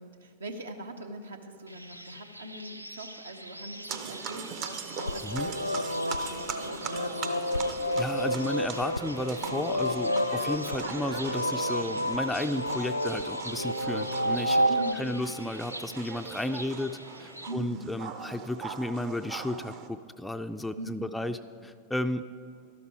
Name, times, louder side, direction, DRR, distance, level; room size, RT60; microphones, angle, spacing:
voice 1, 0.0-7.1 14.7-15.3 17.5-18.0 20.7-21.3, right 1 dB, 70° right, 6 dB, 0.9 m, -42 dB
sound 1, 1.7-17.5, right 1 dB, 85° right, 0.4 m, -45 dB
sound 2, 3.9-19.9, right 6 dB, 40° right, 0.8 m, -41 dB
sound 3, 5.0-14.9, equal, 85° left, 0.3 m, -30 dB
voice 2, 7.6-14.6 15.0-22.2, left 1 dB, 5° left, 7 dB, 0.3 m, -33 dB
12.0 x 12.0 x 4.6 m, 2.5 s
figure-of-eight pair, 90°, 0 cm